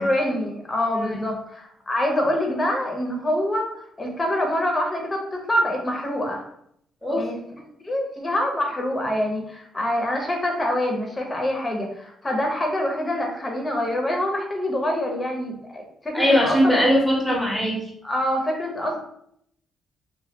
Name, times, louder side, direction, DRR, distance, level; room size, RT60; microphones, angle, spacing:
voice 1, 0.0-3.7 4.0-6.4 7.1-7.4 7.8-16.8 18.0-19.0, left 1 dB, 25° left, 2 dB, 0.8 m, -25 dB
voice 2, 16.1-17.8, equal, 5° right, -2 dB, 0.9 m, -20 dB
3.1 x 2.3 x 2.8 m, 0.71 s
cardioid pair, 90°, 0 cm